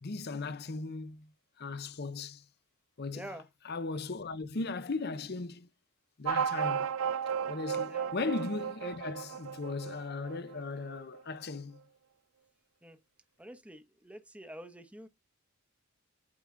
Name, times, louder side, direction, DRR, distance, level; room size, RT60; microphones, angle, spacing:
voice 1, 0.0-1.3 1.6-2.4 3.0-3.4 3.6-5.7 6.2-6.9 7.5-11.8, left 3 dB, 50° left, 0.7 m, -37 dB
voice 2, 3.1-3.4 7.9-8.1 12.8-13.0 13.4-15.1, right 1 dB, 5° right, 1.0 m, -47 dB
sound 1, 6.2-11.2, right 7 dB, 75° right, 0.5 m, -34 dB
8.7 x 4.8 x 3.7 m
head